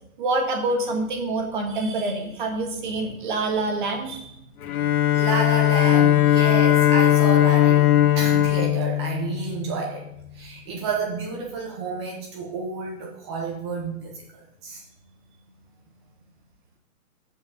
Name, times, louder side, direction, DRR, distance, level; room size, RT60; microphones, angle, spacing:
voice 1, 0.2-4.3, right 2 dB, 35° right, 2 dB, 1.6 m, -26 dB
Bowed string instrument, 4.6-9.8, left 13 dB, 70° left, 0.8 m, -19 dB
voice 2, 5.1-10.0 10.3-14.8, right 4 dB, 20° right, -1 dB, 1.3 m, -30 dB
14.5 x 5.5 x 4.0 m, 0.78 s
hypercardioid pair, 175°, 45 cm